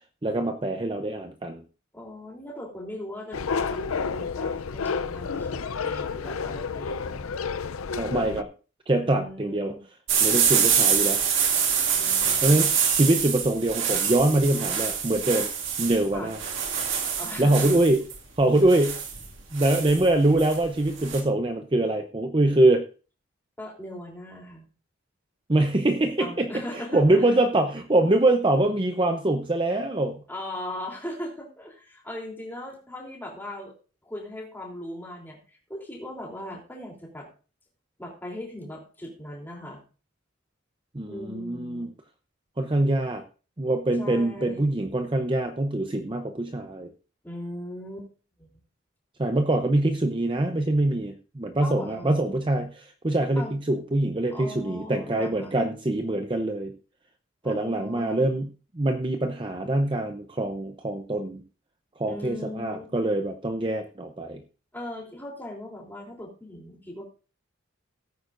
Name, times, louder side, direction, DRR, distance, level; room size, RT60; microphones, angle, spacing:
voice 1, 0.2-1.6 7.9-8.5 8.9-9.7 10.2-11.2 12.4-15.5 15.8-16.4 17.4-18.0 18.4-19.0 19.5-22.8 25.5-30.2 40.9-41.9 42.6-43.2 43.6-46.9 49.2-56.7 57.4-58.5 58.7-61.4 62.0-64.4, right 1 dB, 25° right, 6 dB, 0.7 m, -24 dB
voice 2, 1.9-7.3 9.0-9.8 11.9-12.8 16.1-16.3 17.2-17.8 23.6-24.7 26.2-27.3 30.3-33.7 34.0-37.3 38.0-39.8 41.1-41.8 44.0-44.7 47.2-48.1 48.4-48.6 51.6-52.2 53.4-53.5 54.3-55.6 57.4-58.3 62.0-62.8 64.7-67.0, left 1 dB, 10° left, -1 dB, 3.4 m, -39 dB
sound 1, 3.3-8.4, left 5 dB, 80° left, 0.6 m, -30 dB
sound 2, 10.1-21.2, right 7 dB, 60° right, 2.1 m, -25 dB
17.0 x 9.4 x 2.6 m, 0.35 s
head